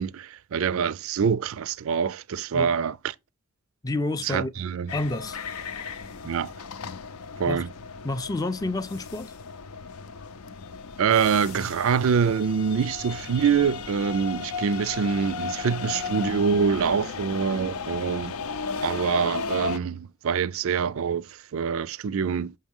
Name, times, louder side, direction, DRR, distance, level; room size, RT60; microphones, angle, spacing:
voice 1, 0.0-3.0 4.2-4.9 6.2-6.5 7.4-7.7 11.0-18.4 18.8-21.3 21.5-22.5, right 6 dB, 65° right, 0.4 m, -25 dB
voice 2, 3.8-4.5 4.9-5.4 7.5-7.7 8.0-9.3, left 2 dB, 15° left, 0.4 m, -29 dB
sound 1, 4.9-19.8, left 5 dB, 80° left, 0.6 m, -35 dB
7.2 x 5.6 x 3.6 m
head